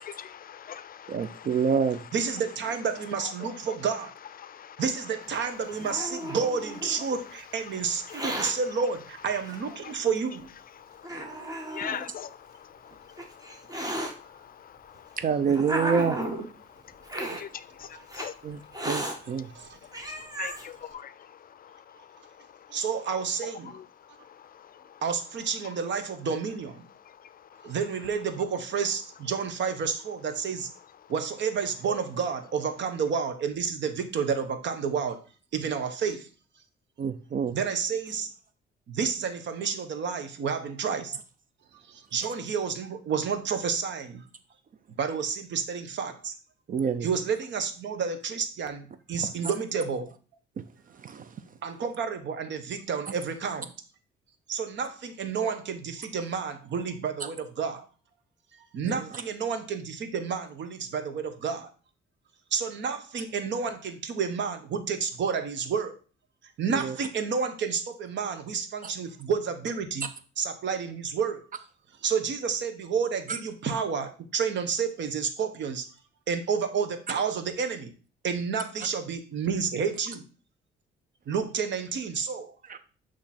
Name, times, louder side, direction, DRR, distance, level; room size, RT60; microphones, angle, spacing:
voice 1, 0.0-1.5 4.4-4.8 8.1-8.2 9.9-10.0 11.0-11.1 11.7-12.9 13.5-13.9 14.2-15.0 17.2-18.3 20.2-21.1 21.6-21.7, left 8 dB, 50° left, 0.4 m, -41 dB
voice 2, 1.1-2.0 15.2-16.2 18.4-19.5 37.0-37.6 46.7-47.1 49.2-49.3 50.6-50.7 51.0-51.3 58.8-59.0 66.7-67.0 73.3-73.4 82.7-82.8, right 6 dB, 45° right, 0.5 m, -27 dB
voice 3, 2.1-4.1 4.8-10.5 17.9-18.0 19.3-19.8 22.7-23.8 25.0-26.9 27.6-30.7 31.1-35.2 35.5-36.3 37.5-38.3 38.9-41.2 41.8-44.2 45.0-46.3 47.0-50.1 51.6-53.7 54.5-57.9 58.5-61.7 62.5-66.0 66.6-70.1 70.4-71.5 72.0-75.8 76.3-77.9 78.2-80.2 81.3-82.5, right 6 dB, 65° right, 1.1 m, -30 dB
Hiss, 5.3-7.0 7.9-8.5 9.5-9.6 10.4-10.5 11.0-12.0 12.9-14.1 15.0-16.5 17.0-17.4 18.1-18.3 18.7-19.2 19.6-19.7 19.9-20.6, right 1 dB, 20° right, 1.4 m, -34 dB
8.3 x 3.1 x 4.2 m
cardioid pair, 90°, 20 cm